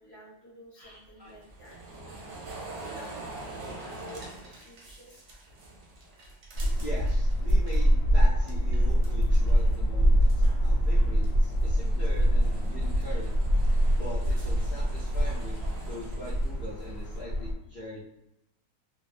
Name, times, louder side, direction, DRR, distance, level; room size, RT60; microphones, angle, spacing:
voice 1, 0.0-2.0 2.5-5.2, equal, 20° left, -6 dB, 0.5 m, -51 dB
voice 2, 0.8-1.3 2.1-2.3 6.8-13.3 14.0-18.1, left 1 dB, 80° left, -8 dB, 0.4 m, -42 dB
sound 1, 0.8-7.9 8.2-9.8 10.1-17.2, right 2 dB, 60° right, 0.7 m, -45 dB
sound 2, 6.5-17.5, equal, 60° left, 0.9 m, -24 dB
2.7 x 2.0 x 2.4 m, 0.87 s
omnidirectional pair, 1.7 m